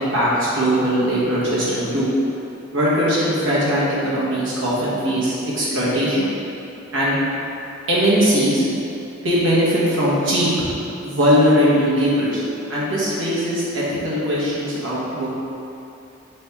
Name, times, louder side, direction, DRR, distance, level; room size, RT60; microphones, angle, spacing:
voice 1, 0.0-2.1 2.7-6.3 6.9-7.2 7.9-8.6 9.2-10.5 11.0-12.4 12.7-15.3, equal, 75° right, -7 dB, 1.1 m, -20 dB
3.4 x 3.4 x 4.3 m, 2.9 s
head